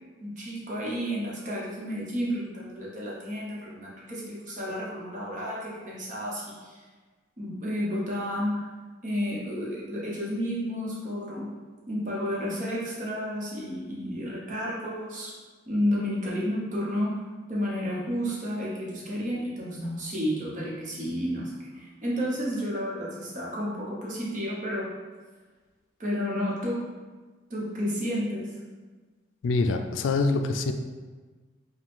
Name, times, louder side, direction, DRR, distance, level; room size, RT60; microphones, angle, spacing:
voice 1, 0.2-6.8 7.4-8.6 9.0-11.5 11.9-15.3 15.7-17.2 17.5-24.9 26.0-26.9 27.5-28.5, equal, 40° right, -5 dB, 0.9 m, -31 dB
voice 2, 29.4-30.7, left 3 dB, 80° left, 6 dB, 0.3 m, -25 dB
5.0 x 2.2 x 3.6 m, 1.4 s
head